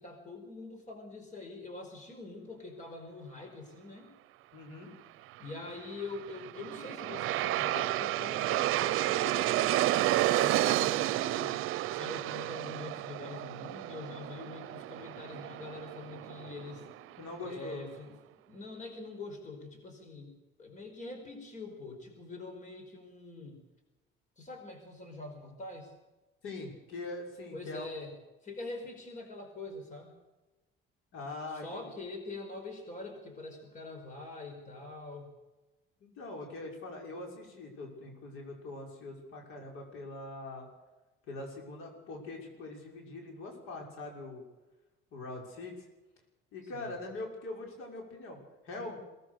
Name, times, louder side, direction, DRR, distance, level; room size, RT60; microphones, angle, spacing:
voice 1, 0.0-4.1 5.4-11.6 11.9-16.9 17.4-18.2 18.5-23.6 24.4-25.9 27.5-28.2 28.4-30.1 31.5-35.3 46.7-46.9, left 3 dB, 35° left, 4 dB, 5.1 m, -44 dB
voice 2, 4.5-4.9 17.2-17.8 26.4-27.9 31.1-31.9 36.0-40.7 41.3-44.4 45.1-45.8 46.5-49.0, left 2 dB, 90° left, 1 dB, 6.2 m, -42 dB
Aircraft, 6.1-17.2, right 15 dB, 75° right, 0.7 m, -31 dB
23.0 x 18.5 x 6.6 m, 1.1 s
cardioid pair, 145°, 21 cm